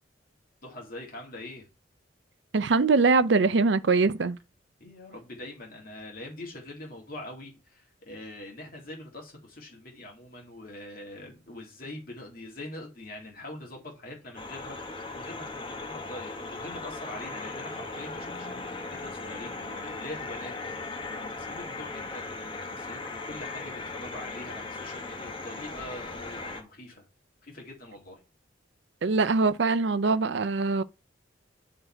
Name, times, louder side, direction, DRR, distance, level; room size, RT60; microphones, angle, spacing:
voice 1, 0.6-1.7 4.8-27.1 27.4-28.2, left 1 dB, 50° left, 2.5 m, -43 dB
voice 2, 2.5-4.4 29.0-30.8, right 4 dB, 65° right, 0.5 m, -23 dB
sound 1, 14.3-26.6, left 3 dB, 25° left, 1.1 m, -38 dB
9.1 x 3.9 x 4.5 m
head